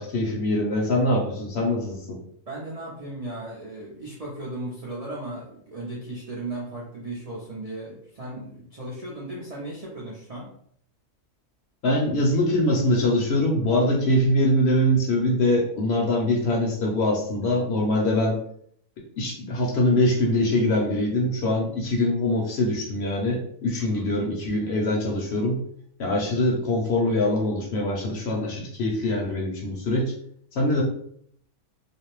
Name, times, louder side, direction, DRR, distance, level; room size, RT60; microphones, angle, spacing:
voice 1, 0.0-2.2 11.8-18.4 19.2-25.6 26.0-30.1 30.5-30.8, left 1 dB, 65° left, -1 dB, 0.7 m, -23 dB
voice 2, 2.5-10.5 23.9-24.1, right 2 dB, 60° right, -5 dB, 0.3 m, -36 dB
2.5 x 2.0 x 3.0 m, 0.65 s
omnidirectional pair, 1.4 m